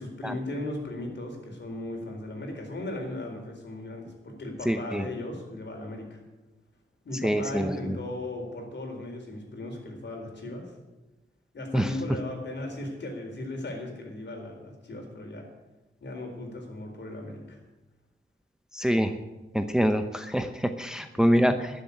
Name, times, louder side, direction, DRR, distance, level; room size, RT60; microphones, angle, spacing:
voice 1, 0.0-6.2 7.0-10.8 11.5-15.5 16.0-17.6 21.4-21.5, left 1 dB, 55° left, 2 dB, 4.2 m, -37 dB
voice 2, 4.7-5.0 7.2-8.0 11.7-11.9 18.7-19.1 19.5-21.7, equal, 5° right, 8 dB, 0.8 m, -25 dB
12.5 x 7.3 x 9.8 m, 1.1 s
cardioid pair, 75°, 21 cm